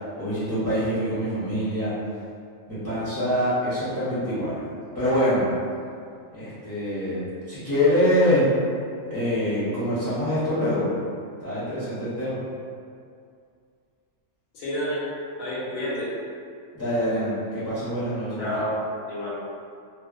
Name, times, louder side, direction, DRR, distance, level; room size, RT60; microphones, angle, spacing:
voice 1, 0.2-1.9 2.7-4.6 4.9-5.5 6.3-8.6 9.1-10.8 11.4-12.4 16.7-18.5, equal, 25° left, -13 dB, 0.5 m, -25 dB
voice 2, 14.5-15.0 15.4-16.1 18.4-18.8 19.1-19.4, equal, 85° left, -8 dB, 1.2 m, -29 dB
2.7 x 2.0 x 2.4 m, 2.3 s
omnidirectional pair, 1.4 m